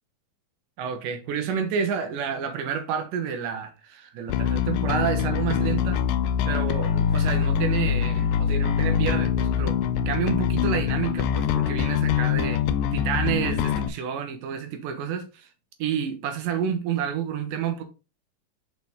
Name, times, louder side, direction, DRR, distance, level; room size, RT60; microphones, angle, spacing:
voice 1, 0.8-6.0 6.5-9.8 10.1-12.6 12.9-15.5 15.8-17.8, right 7 dB, 75° right, 2.5 m, -29 dB
Bass guitar, 4.3-13.9, left 8 dB, 85° left, 2.3 m, -24 dB
6.3 x 4.4 x 3.5 m
omnidirectional pair, 3.9 m